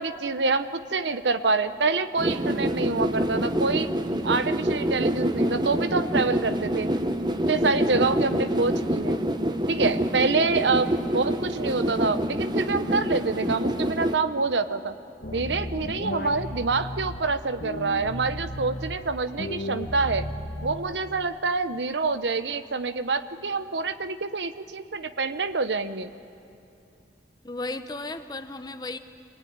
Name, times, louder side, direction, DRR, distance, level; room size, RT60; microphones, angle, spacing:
voice 1, 0.0-3.9 4.2-6.9 7.5-9.2 9.7-10.9 11.1-14.9 15.3-20.3 20.6-26.1, right 4 dB, 85° right, 11 dB, 0.9 m, -26 dB
sound 1, 2.2-14.2, right 1 dB, 25° right, 0.9 m, -26 dB
sound 2, 15.2-17.2 17.6-19.0 19.4-21.0, left 1 dB, 60° left, 1.6 m, -34 dB
voice 2, 27.4-29.0, left 2 dB, 20° left, 9 dB, 0.9 m, -34 dB
27.0 x 20.0 x 9.6 m, 2.7 s
head